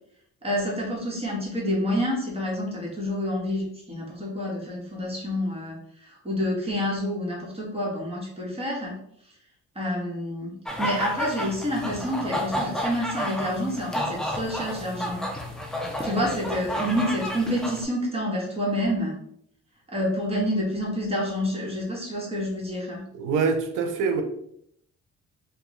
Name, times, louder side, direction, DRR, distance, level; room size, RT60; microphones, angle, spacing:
voice 1, 0.4-9.0 9.7-15.3 16.0-19.1 19.9-23.0, equal, 20° right, -4 dB, 1.4 m, -28 dB
sound 1, 10.7-17.8, equal, ahead, 0.6 m, -31 dB
voice 2, 23.1-24.2, right 5 dB, 85° right, 5 dB, 0.6 m, -24 dB
3.5 x 2.4 x 3.1 m, 0.70 s
cardioid pair, 90°, 30 cm